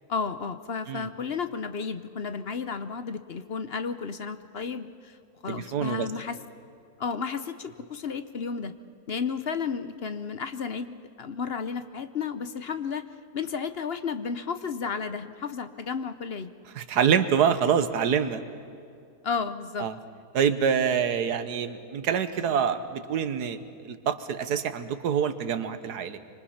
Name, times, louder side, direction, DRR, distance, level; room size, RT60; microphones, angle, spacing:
voice 1, 0.1-5.2 5.4-6.4 7.0-8.7 9.1-13.1 13.3-16.5 19.2-19.9, left 5 dB, 50° left, 10 dB, 0.8 m, -32 dB
voice 2, 5.5-6.1 16.7-18.4 19.8-19.9 20.3-26.2, right 7 dB, 80° right, 10 dB, 1.6 m, -26 dB
25.5 x 25.5 x 5.8 m, 2.4 s
omnidirectional pair, 1.7 m